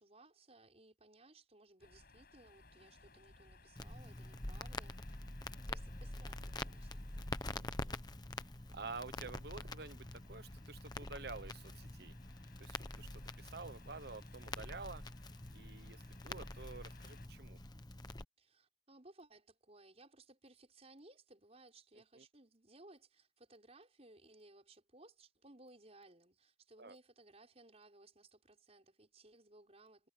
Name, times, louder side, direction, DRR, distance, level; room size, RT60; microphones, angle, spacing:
voice 1, 0.0-5.2 5.6-7.1 18.4-30.1, right 2 dB, 35° right, 6.4 m, -61 dB
sound 1, 1.8-17.3, left 2 dB, 55° left, 7.2 m, -63 dB
Crackle, 3.8-18.2, left 2 dB, 20° left, 1.1 m, -46 dB
voice 2, 7.5-8.0 8.7-12.1 12.6-15.0 15.5-17.6 21.9-22.2 26.8-27.0, right 4 dB, 60° right, 1.1 m, -50 dB
head